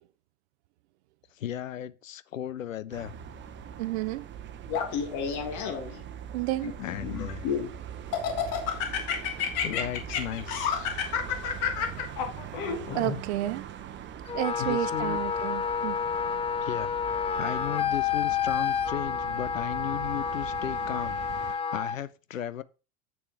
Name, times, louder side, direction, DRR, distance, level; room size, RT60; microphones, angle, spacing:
voice 1, 1.4-3.1 6.8-7.5 9.6-10.9 14.6-15.2 16.6-16.9 17.4-22.6, left 10 dB, 80° left, 0.6 m, -35 dB
sound 1, 2.9-21.6, right 9 dB, 30° right, 0.9 m, -42 dB
voice 2, 3.8-4.2 6.3-6.7 12.9-13.6 14.3-16.0, right 15 dB, 60° right, 0.6 m, -31 dB
Laughter, 4.7-6.0 6.6-7.7 8.1-13.2, left 8 dB, 50° left, 1.7 m, -30 dB
Wind instrument woodwind instrument, 14.3-22.0, left 7 dB, 15° left, 0.5 m, -29 dB
8.4 x 6.8 x 3.4 m
figure-of-eight pair, 80°, 39 cm